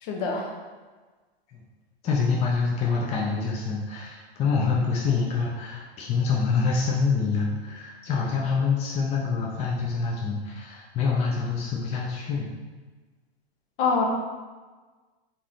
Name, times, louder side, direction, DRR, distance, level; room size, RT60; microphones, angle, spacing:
voice 1, 0.0-0.5 13.8-14.1, left 4 dB, 55° left, 1 dB, 0.8 m, -25 dB
voice 2, 2.0-12.5, left 5 dB, 20° left, -2 dB, 0.5 m, -26 dB
4.1 x 3.7 x 2.5 m, 1.3 s
hypercardioid pair, 120°, 32 cm